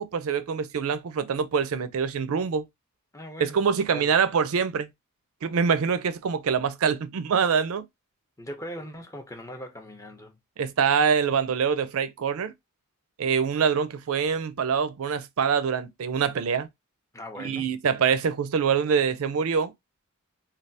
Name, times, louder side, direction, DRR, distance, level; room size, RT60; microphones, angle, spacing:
voice 1, 0.0-2.7 3.4-4.9 5.4-7.8 10.6-12.5 13.2-16.7 17.4-19.7, right 6 dB, 75° right, 0.4 m, -25 dB
voice 2, 3.1-4.2 8.4-10.4 17.1-17.7, equal, 15° left, 0.5 m, -40 dB
3.3 x 2.3 x 2.6 m
head